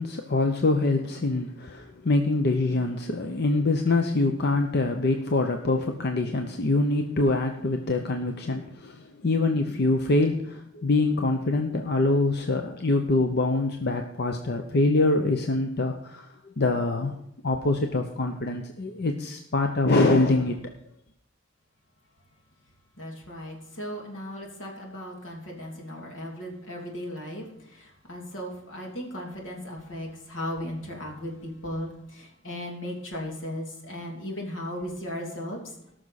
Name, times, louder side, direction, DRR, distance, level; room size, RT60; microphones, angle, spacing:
voice 1, 0.0-16.3 16.6-17.1 17.4-20.6, left 2 dB, 55° left, 4 dB, 0.8 m, -24 dB
voice 2, 23.0-35.7, left 1 dB, 85° left, -1 dB, 2.8 m, -36 dB
18.5 x 6.3 x 4.1 m, 0.76 s
head